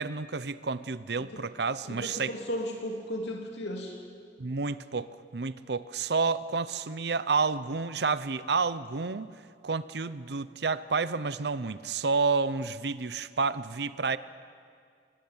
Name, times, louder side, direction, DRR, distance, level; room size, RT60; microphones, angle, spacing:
voice 1, 0.0-2.3 4.4-9.3 9.6-14.2, right 4 dB, 70° right, 14 dB, 0.7 m, -30 dB
voice 2, 1.9-4.0, equal, 75° left, 1 dB, 3.2 m, -35 dB
25.5 x 18.5 x 8.8 m, 2.1 s
head